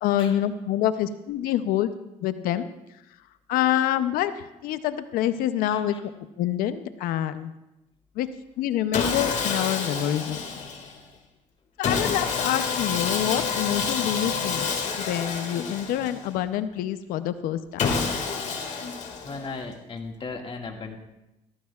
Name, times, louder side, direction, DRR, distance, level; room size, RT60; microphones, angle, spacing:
voice 1, 0.0-1.9 2.2-2.7 3.5-4.3 4.6-6.1 6.4-7.5 8.2-8.3 8.6-10.4 11.8-14.7 15.0-17.6, left 11 dB, 85° left, 12 dB, 0.6 m, -26 dB
voice 2, 5.7-6.0 19.2-21.0, left 4 dB, 40° left, 2 dB, 1.9 m, -36 dB
Sawing, 8.9-11.0 11.8-16.4 17.8-19.6, left 5 dB, 55° left, 2.0 m, -28 dB
17.0 x 13.5 x 2.4 m, 0.94 s
cardioid pair, 85°, 15 cm